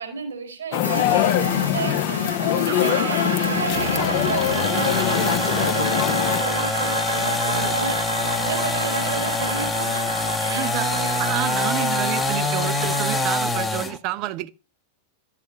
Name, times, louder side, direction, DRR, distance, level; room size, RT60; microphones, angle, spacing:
voice 1, 0.0-7.0 7.4-11.1 11.4-11.7, right 6 dB, 70° right, 4.2 m, -33 dB
People Exiting and Dispersing from Movie Theatre, 0.7-6.4, left 12 dB, 45° left, 0.7 m, -23 dB
sound 1, 0.8-13.3, right 2 dB, 90° right, 2.8 m, -29 dB
voice 2, 2.7-3.3 7.6-7.7 10.5-10.9 11.2-14.5, right 15 dB, 40° right, 0.5 m, -29 dB
sound 2, 3.7-14.0, left 2 dB, 10° left, 1.0 m, -25 dB
12.5 x 7.5 x 3.0 m
figure-of-eight pair, 90°, 0 cm